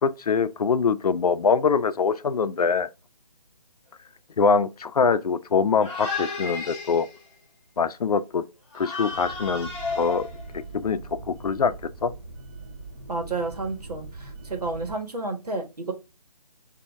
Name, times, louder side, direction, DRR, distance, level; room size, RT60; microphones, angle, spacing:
voice 1, 0.0-2.9 4.4-7.1 7.8-8.4 8.7-9.7 10.0-10.3 10.5-11.0 11.3-11.7 12.0-12.1, left 5 dB, 70° left, 0.5 m, -23 dB
sound 1, 5.8-7.3 8.7-10.6, left 4 dB, 20° left, 1.3 m, -33 dB
sound 2, 9.1-15.0, right 3 dB, 35° right, 0.9 m, -42 dB
voice 2, 13.1-15.9, right 3 dB, 75° right, 1.4 m, -31 dB
5.2 x 2.7 x 3.4 m
figure-of-eight pair, 165°, 20 cm